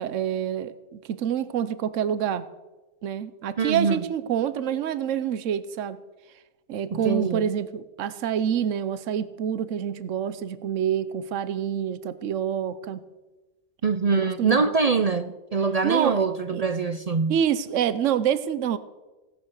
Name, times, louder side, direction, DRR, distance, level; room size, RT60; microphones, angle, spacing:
voice 1, 0.0-2.5 3.0-6.0 6.7-13.0 14.1-14.7 15.8-16.2 16.5-16.6 17.3-18.8, right 9 dB, 70° right, 14 dB, 1.1 m, -27 dB
voice 2, 3.6-4.0 6.9-7.4 13.8-17.4, right 5 dB, 50° right, 11 dB, 0.4 m, -24 dB
16.5 x 10.0 x 6.5 m, 1.1 s
omnidirectional pair, 1.4 m